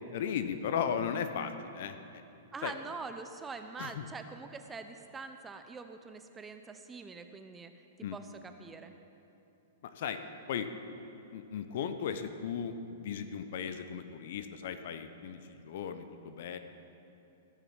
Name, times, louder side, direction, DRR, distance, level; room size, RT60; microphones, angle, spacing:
voice 1, 0.1-2.0 2.6-2.7 3.8-4.1 8.0-8.2 9.8-10.7 11.3-16.6, left 7 dB, 60° left, 10 dB, 0.8 m, -36 dB
voice 2, 2.5-7.7 8.1-8.9, right 4 dB, 15° right, 7 dB, 0.8 m, -44 dB
15.5 x 7.0 x 7.2 m, 2.9 s
hypercardioid pair, 115°, 0 cm